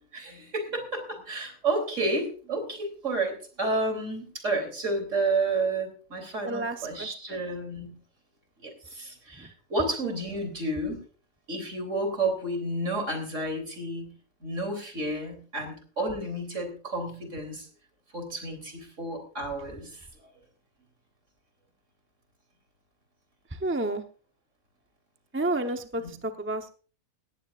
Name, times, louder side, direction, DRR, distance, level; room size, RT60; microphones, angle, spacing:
voice 1, 0.1-7.9 8.6-11.0 11.5-14.1 14.4-17.7 18.1-20.1, right 2 dB, 60° right, 5 dB, 3.8 m, -31 dB
voice 2, 6.4-7.4 9.4-9.5 23.5-24.0 25.3-26.7, right 2 dB, 10° right, 6 dB, 0.8 m, -31 dB
18.0 x 14.5 x 2.5 m, 0.39 s
omnidirectional pair, 1.5 m